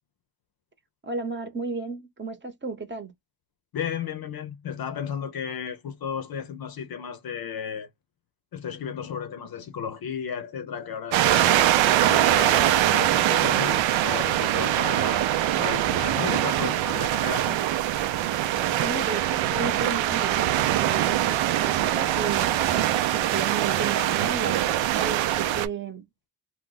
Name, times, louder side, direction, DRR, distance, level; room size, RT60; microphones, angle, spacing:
voice 1, 1.0-3.1 18.8-22.5 23.1-26.0, right 4 dB, 25° right, 0.9 m, -33 dB
voice 2, 3.7-7.9 8.5-15.3 15.6-17.6, left 7 dB, 50° left, 0.7 m, -34 dB
sound 1, 11.1-25.7, right 13 dB, 70° right, 0.6 m, -23 dB
2.4 x 2.2 x 3.9 m
supercardioid pair, 70°, 48 cm